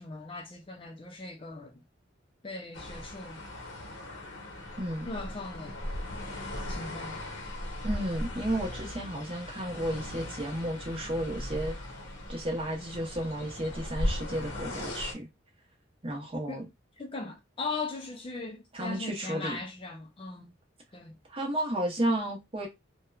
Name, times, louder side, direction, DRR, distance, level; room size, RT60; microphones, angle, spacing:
voice 1, 0.0-1.8 2.4-3.4 5.0-5.8 6.7-7.2 16.5-16.6 17.0-20.5 20.9-21.2, left 3 dB, 25° left, 0.4 m, -39 dB
sound 1, 2.7-15.1, left 1 dB, 70° left, 0.8 m, -38 dB
voice 2, 4.8-5.1 7.8-11.7 12.3-15.3 16.0-16.7 18.7-19.6 21.3-22.7, right 1 dB, 30° right, 0.8 m, -32 dB
2.8 x 2.2 x 2.3 m
head